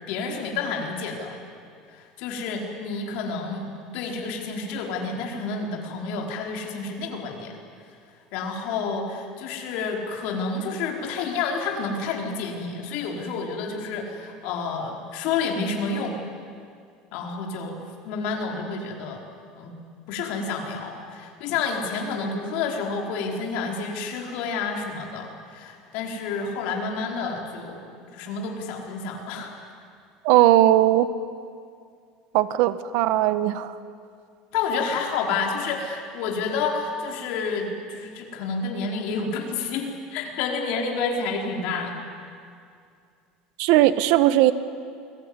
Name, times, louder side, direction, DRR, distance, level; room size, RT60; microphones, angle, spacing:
voice 1, 0.1-1.4 1.9-7.5 8.3-16.2 17.1-17.8 18.0-19.2 19.5-19.7 20.1-27.8 28.1-29.5 34.5-39.9 40.1-42.0, left 4 dB, 60° left, 1 dB, 4.8 m, -29 dB
voice 2, 30.2-31.1 32.3-33.7 43.6-44.5, right 14 dB, 65° right, 13 dB, 1.2 m, -18 dB
28.5 x 21.0 x 9.8 m, 2.3 s
cardioid pair, 170°, 2 cm